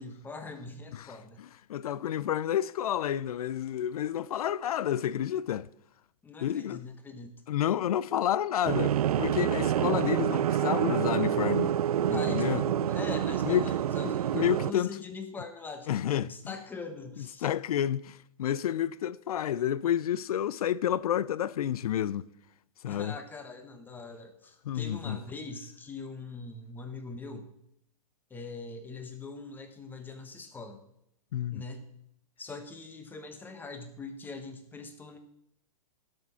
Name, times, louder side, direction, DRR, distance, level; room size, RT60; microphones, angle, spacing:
voice 1, 0.0-1.4 6.2-7.3 12.1-17.5 22.9-27.5 28.3-30.8 31.5-31.9 32.4-35.2, left 3 dB, 10° left, 1.1 m, -42 dB
voice 2, 0.9-5.7 6.4-6.8 7.5-11.8 12.1-12.6 13.5-13.8 14.0-15.0 15.9-16.5 17.4-22.3 22.8-23.2 24.7-25.2 31.3-31.6, left 10 dB, 80° left, 0.4 m, -30 dB
sound 1, 8.6-14.7, right 10 dB, 85° right, 0.4 m, -27 dB
12.0 x 6.3 x 5.6 m
hypercardioid pair, 140°, 19 cm